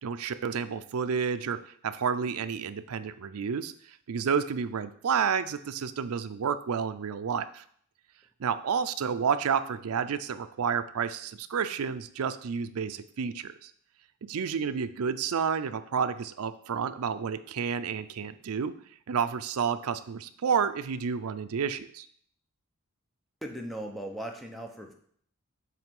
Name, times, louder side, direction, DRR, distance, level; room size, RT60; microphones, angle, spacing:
voice 1, 0.0-7.6 8.4-13.7 14.3-18.7 19.1-22.1, right 6 dB, 70° right, 11 dB, 0.4 m, -30 dB
voice 2, 23.4-24.9, right 1 dB, ahead, 2 dB, 0.8 m, -38 dB
7.6 x 3.2 x 5.3 m, 0.62 s
head